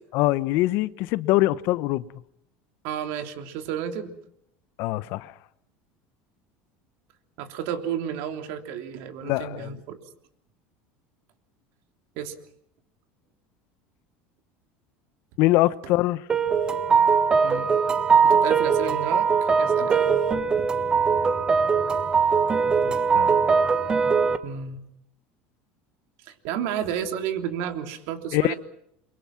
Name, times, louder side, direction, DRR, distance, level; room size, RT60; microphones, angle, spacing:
voice 1, 0.1-2.0 4.8-5.3 9.2-9.7 15.4-16.2 22.8-23.3 28.3-28.5, left 17 dB, 60° left, 0.9 m, -23 dB
voice 2, 2.8-4.1 7.4-10.0 12.1-12.3 17.4-17.7 18.2-19.3 19.6-20.1 24.4-24.8 26.2-28.6, right 9 dB, 65° right, 3.3 m, -31 dB
sound 1, 16.3-24.4, right 5 dB, 20° right, 1.3 m, -21 dB
28.5 x 23.5 x 5.9 m
cardioid pair, 150°, 5 cm